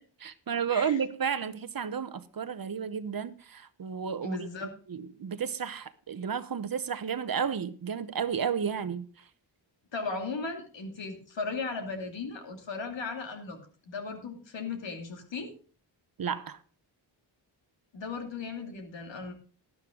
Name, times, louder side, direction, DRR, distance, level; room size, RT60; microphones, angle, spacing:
voice 1, 0.2-9.0 16.2-16.6, right 7 dB, 50° right, 1.0 m, -32 dB
voice 2, 4.2-4.7 9.9-13.6 13.9-15.5 17.9-19.3, left 4 dB, 75° left, 2.7 m, -36 dB
12.0 x 11.5 x 3.8 m
cardioid pair, 75°, 45 cm